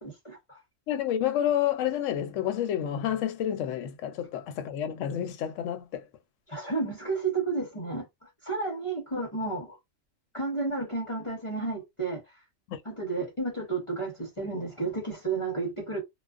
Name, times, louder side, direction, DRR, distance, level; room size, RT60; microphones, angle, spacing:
voice 1, 0.0-0.6 6.5-9.8 10.3-12.2 12.8-16.0, right 3 dB, 30° left, 0.6 m, -32 dB
voice 2, 0.9-6.0 12.7-12.8, left 10 dB, 70° left, 0.9 m, -29 dB
2.3 x 2.3 x 2.3 m
omnidirectional pair, 1.4 m